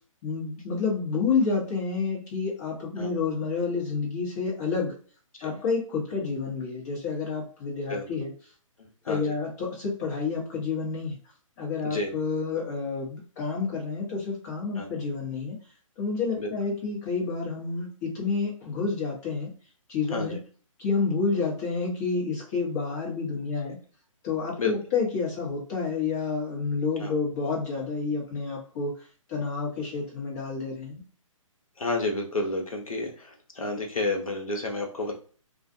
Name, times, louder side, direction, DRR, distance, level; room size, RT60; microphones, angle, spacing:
voice 1, 0.2-4.9 5.4-8.3 9.1-11.1 11.6-15.6 16.0-19.5 19.9-20.4 20.8-23.8 24.2-28.9 29.3-31.0, left 4 dB, 30° left, -2 dB, 1.0 m, -29 dB
voice 2, 31.8-35.1, left 2 dB, 90° left, 2 dB, 0.8 m, -30 dB
2.4 x 2.2 x 2.6 m, 0.42 s
figure-of-eight pair, 140°, 17 cm